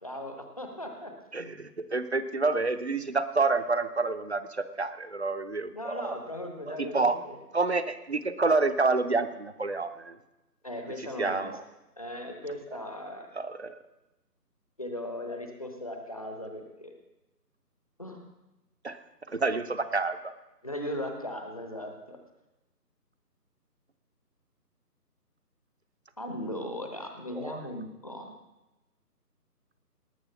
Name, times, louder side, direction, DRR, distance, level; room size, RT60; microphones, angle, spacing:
voice 1, 0.0-1.1 5.7-7.4 10.6-11.5 12.0-13.3 14.8-16.9 18.0-18.2 20.6-22.2 26.2-28.3, left 1 dB, 20° left, 4 dB, 0.9 m, -38 dB
voice 2, 1.3-6.1 6.8-7.2 7.5-10.2 11.2-11.6 13.4-13.7 18.8-19.0 19.3-20.3 27.3-27.6, right 3 dB, 40° right, 11 dB, 0.7 m, -28 dB
19.0 x 6.8 x 5.6 m, 0.99 s
figure-of-eight pair, 160°, 49 cm